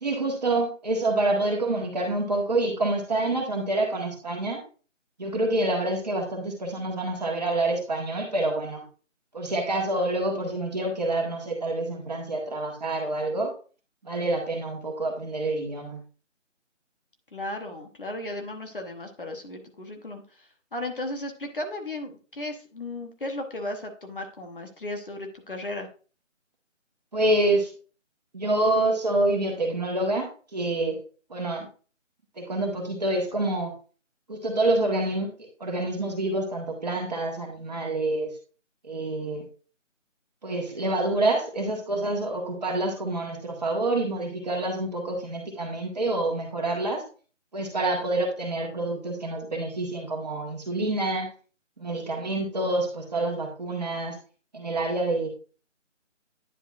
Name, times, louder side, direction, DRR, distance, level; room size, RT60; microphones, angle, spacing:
voice 1, 0.0-4.6 5.2-8.8 9.3-13.5 14.0-16.0 27.1-27.7 28.3-31.0 31.3-31.7 32.4-33.7 34.3-35.3 35.6-38.3 38.8-39.4 40.4-47.0 47.5-51.3 51.8-54.1 54.5-55.3, right 2 dB, 35° right, 1 dB, 1.7 m, -27 dB
voice 2, 17.3-25.9, left 1 dB, 45° left, 5 dB, 1.1 m, -35 dB
10.0 x 5.1 x 2.5 m, 0.37 s
figure-of-eight pair, 170°, 38 cm